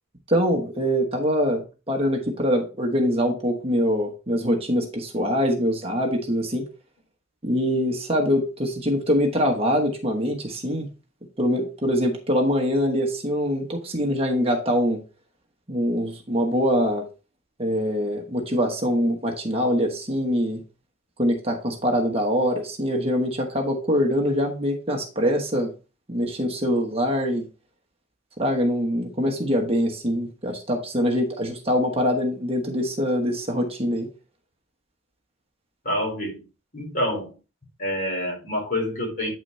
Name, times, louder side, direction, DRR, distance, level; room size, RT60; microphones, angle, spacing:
voice 1, 0.3-6.7 7.4-10.9 11.4-15.0 15.7-17.0 17.6-20.6 21.2-25.7 26.1-27.5 28.4-34.1, equal, 30° right, 2 dB, 1.2 m, -24 dB
voice 2, 35.8-36.4 36.7-37.3 37.8-39.3, left 1 dB, 40° left, -1 dB, 4.4 m, -27 dB
8.8 x 6.1 x 3.1 m, 0.32 s
head